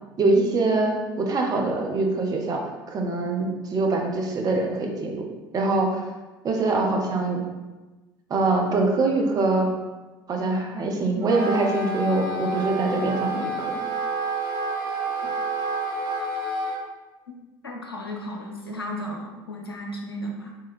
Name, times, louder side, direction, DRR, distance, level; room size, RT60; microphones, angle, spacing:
voice 1, 0.2-2.6 2.9-5.2 5.5-6.0 6.4-7.4 8.3-9.7 10.3-13.7, right 3 dB, 30° right, 1 dB, 0.7 m, -23 dB
Wind instrument woodwind instrument, 11.2-16.8, right 2 dB, 65° right, 0.6 m, -29 dB
voice 2, 17.6-20.5, equal, 85° left, 0 dB, 0.6 m, -34 dB
3.5 x 3.0 x 3.1 m, 1.2 s
figure-of-eight pair, 65°, 12 cm